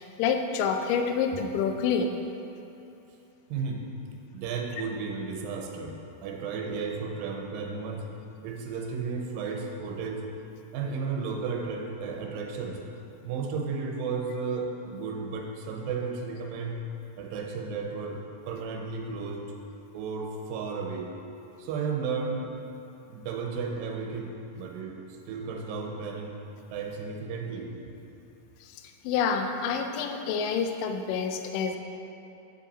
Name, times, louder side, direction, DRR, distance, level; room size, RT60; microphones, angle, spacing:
voice 1, 0.2-2.1 28.6-31.8, left 6 dB, 85° left, 5 dB, 2.0 m, -28 dB
voice 2, 3.5-3.8 4.3-6.0 6.2-8.1 8.4-10.2 10.7-12.8 13.2-16.8 17.2-19.5 19.9-21.1 21.6-22.5 23.1-25.0 25.3-26.3 26.7-27.7, right 5 dB, 75° right, 1 dB, 2.3 m, -33 dB
10.0 x 5.7 x 4.2 m, 2.8 s
omnidirectional pair, 4.5 m